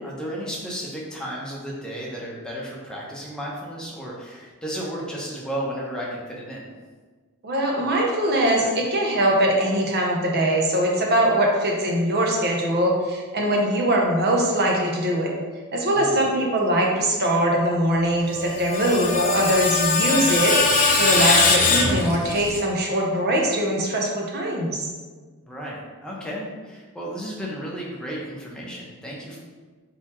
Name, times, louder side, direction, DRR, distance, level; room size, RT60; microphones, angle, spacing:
voice 1, 0.0-6.7 15.9-16.2 25.4-29.4, equal, 5° left, -5 dB, 0.8 m, -33 dB
voice 2, 7.4-15.3 15.7-20.5 20.9-24.8, right 1 dB, 45° right, -1 dB, 0.8 m, -22 dB
Screech, 18.3-22.6, left 3 dB, 35° left, 0.6 m, -21 dB
4.4 x 3.9 x 3.1 m, 1.4 s
head